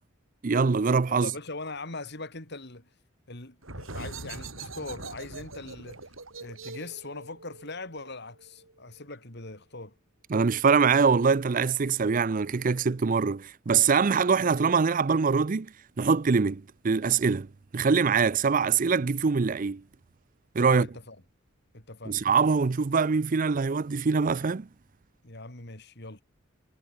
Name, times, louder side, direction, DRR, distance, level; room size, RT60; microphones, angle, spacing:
voice 1, 0.4-1.3 10.3-15.7 16.0-17.5 17.7-19.8 20.5-20.9 22.1-24.7, right 5 dB, 40° right, 0.5 m, -23 dB
voice 2, 1.1-2.9 3.3-6.0 6.4-9.9 20.6-21.2 21.7-22.2 25.2-26.2, left 3 dB, 55° left, 3.6 m, -41 dB
sound 1, 3.6-9.0, right 3 dB, 80° right, 6.7 m, -42 dB
head